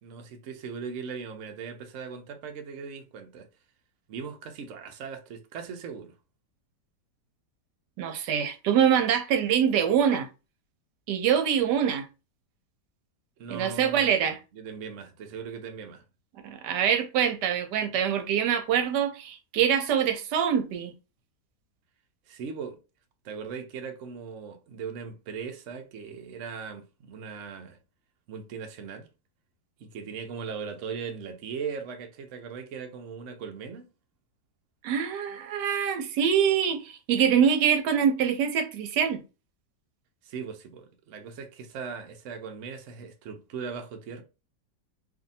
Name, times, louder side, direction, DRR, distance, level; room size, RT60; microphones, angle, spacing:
voice 1, 0.0-3.5 4.1-6.1 13.4-16.0 22.3-22.8 23.2-27.8 28.3-29.1 29.8-33.9 40.2-44.2, right 6 dB, 60° right, 0.8 m, -39 dB
voice 2, 8.0-10.3 11.1-12.1 13.5-14.4 16.4-20.9 34.8-39.2, right 8 dB, 80° right, 1.2 m, -24 dB
2.7 x 2.6 x 4.0 m
omnidirectional pair, 1.8 m